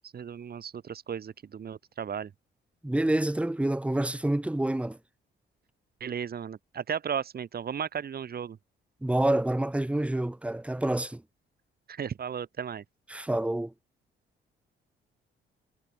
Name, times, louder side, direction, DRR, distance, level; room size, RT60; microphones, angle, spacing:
voice 1, 0.1-2.3 6.0-8.6 11.9-12.8, right 7 dB, 50° right, 3.3 m, -35 dB
voice 2, 2.8-5.0 9.0-11.2 13.1-13.7, right 1 dB, 5° right, 1.1 m, -27 dB
cardioid pair, 90°, 20 cm